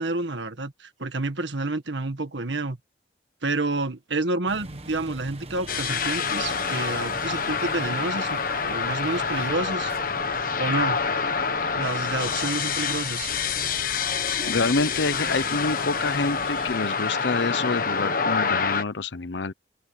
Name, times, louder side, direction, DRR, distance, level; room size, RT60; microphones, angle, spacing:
voice 1, 0.0-2.8 3.4-9.9 10.6-11.0 11.7-13.3, right 2 dB, 75° right, 1.7 m, -29 dB
sound 1, 4.5-16.8, right 2 dB, 35° right, 1.4 m, -43 dB
sound 2, 5.7-18.8, left 5 dB, 50° left, 1.3 m, -27 dB
voice 2, 14.4-19.5, left 3 dB, 70° left, 0.8 m, -27 dB
open air
head